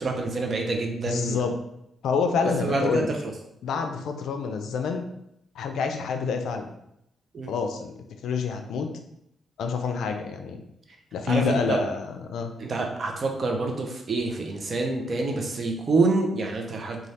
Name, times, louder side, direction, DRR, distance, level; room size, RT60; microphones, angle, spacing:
voice 1, 0.0-1.4 2.4-3.3 7.3-7.5 11.3-11.8 12.6-17.0, right 3 dB, 45° right, 2 dB, 0.5 m, -27 dB
voice 2, 1.1-1.6 2.0-3.1 3.6-5.1 5.6-6.7 7.5-7.9 8.2-8.9 9.6-10.6 11.1-12.5, left 5 dB, 85° left, 6 dB, 0.3 m, -27 dB
3.2 x 2.3 x 2.7 m, 0.79 s
cardioid pair, 100°, 0 cm